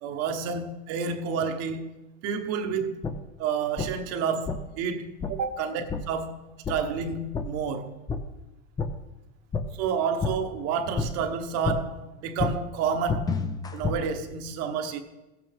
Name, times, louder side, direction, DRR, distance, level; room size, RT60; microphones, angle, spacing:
voice 1, 0.0-1.9 2.2-3.1 3.4-6.4 6.7-8.0 9.8-13.3 13.7-15.0, right 6 dB, 40° right, 1.1 m, -30 dB
sound 1, 3.0-3.1 3.8-3.9 4.4-4.6 5.2-5.3 5.9-6.0 6.6-6.7 7.3-7.4 8.1-8.2 8.8-8.9 9.5-9.6 10.2-10.3 10.9-11.1 11.6-11.8 12.4-12.5 13.1-14.0, left 5 dB, 10° left, 0.4 m, -28 dB
15.0 x 8.1 x 3.5 m
supercardioid pair, 135°, 37 cm